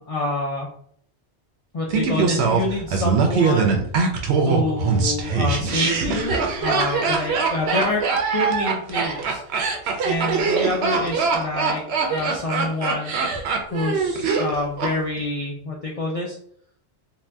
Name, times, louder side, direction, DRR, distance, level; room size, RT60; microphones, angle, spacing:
voice 1, 0.1-0.7 1.7-3.7 4.4-8.1 8.3-9.4 10.0-11.8 12.1-13.1 13.7-16.4, left 2 dB, 65° left, -2 dB, 0.3 m, -27 dB
Laughter, 1.9-14.9 15.2-15.3, right 4 dB, 70° right, 0.8 m, -22 dB
2.6 x 2.1 x 3.3 m, 0.63 s
omnidirectional pair, 1.2 m